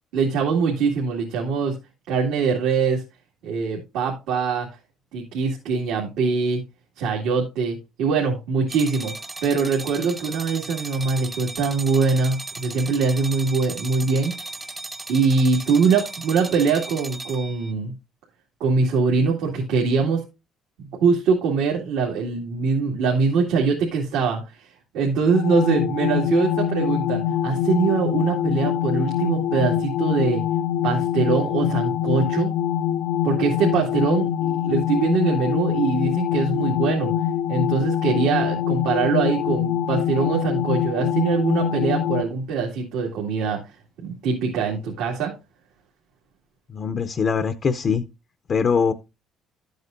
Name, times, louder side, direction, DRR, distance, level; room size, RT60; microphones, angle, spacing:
voice 1, 0.1-1.8 2.1-3.0 3.4-4.7 5.1-6.6 7.0-9.1 9.4-14.3 15.1-17.9 18.6-20.2 20.8-24.7 24.9-30.4 30.8-32.5 33.2-37.1 37.5-43.6 44.0-45.3, right 5 dB, 90° right, 2.1 m, -23 dB
sound 1, 8.7-17.7, right 2 dB, 15° right, 0.7 m, -36 dB
sound 2, 25.3-42.2, left 10 dB, 85° left, 0.5 m, -24 dB
voice 2, 46.7-48.0 48.5-48.9, left 6 dB, 35° left, 0.5 m, -22 dB
12.0 x 8.0 x 2.5 m
cardioid pair, 135°, 0 cm